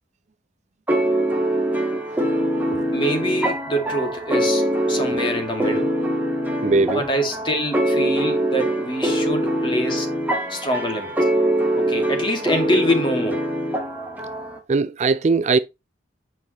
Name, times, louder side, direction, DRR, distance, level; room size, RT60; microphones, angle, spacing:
sound 1, 0.9-14.6, right 1 dB, 10° right, 1.8 m, -23 dB
voice 1, 2.4-2.8 6.6-7.1 14.7-15.6, right 3 dB, 40° right, 0.4 m, -20 dB
voice 2, 2.9-5.9 6.9-10.1 10.5-11.2 11.8-13.5, equal, 25° left, 2.3 m, -25 dB
9.0 x 5.6 x 3.1 m
head